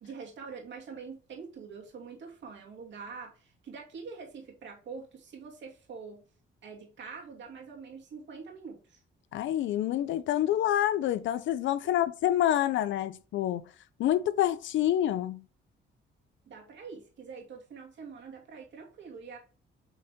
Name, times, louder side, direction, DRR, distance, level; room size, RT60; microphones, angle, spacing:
voice 1, 0.0-6.2 6.6-9.0 11.8-11.9 16.5-19.4, right 5 dB, 65° right, 2.4 m, -45 dB
voice 2, 9.3-13.6 14.0-15.4, left 12 dB, 75° left, 0.6 m, -27 dB
8.2 x 3.9 x 3.6 m
cardioid pair, 90°, 20 cm